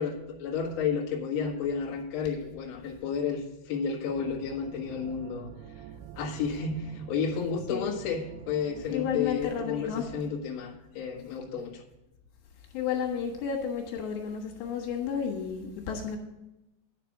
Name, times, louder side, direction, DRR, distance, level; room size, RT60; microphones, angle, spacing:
voice 1, 0.0-5.5 6.1-11.8, left 6 dB, 50° left, -4 dB, 2.2 m, -32 dB
sound 1, 4.1-9.4, right 10 dB, 80° right, 2.5 m, -46 dB
voice 2, 8.9-10.1 12.7-16.2, left 7 dB, 75° left, 0 dB, 3.5 m, -32 dB
10.0 x 6.0 x 7.3 m, 0.93 s
omnidirectional pair, 5.1 m